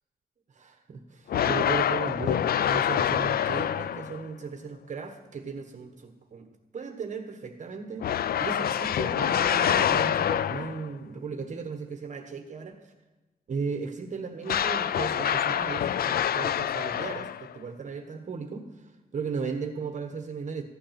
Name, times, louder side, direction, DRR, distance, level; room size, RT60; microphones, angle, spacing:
voice 1, 0.5-6.5 6.7-12.9 13.5-20.6, right 5 dB, 50° right, 5 dB, 1.3 m, -36 dB
sound 1, 1.3-4.3 8.0-10.9 14.5-17.6, left 9 dB, 70° left, 0.4 m, -26 dB
15.0 x 9.9 x 5.9 m, 1.1 s
wide cardioid pair, 130°, 16 cm